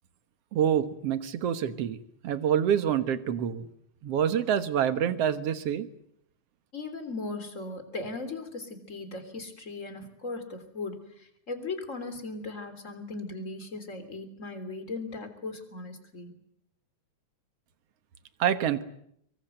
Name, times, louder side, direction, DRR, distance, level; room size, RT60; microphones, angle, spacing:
voice 1, 0.5-2.0 2.2-3.7 4.0-5.9 18.4-18.8, right 9 dB, 60° right, 11 dB, 2.1 m, -26 dB
voice 2, 6.7-16.3, left 3 dB, 25° left, 8 dB, 3.4 m, -38 dB
25.0 x 23.5 x 8.0 m, 0.74 s
omnidirectional pair, 3.4 m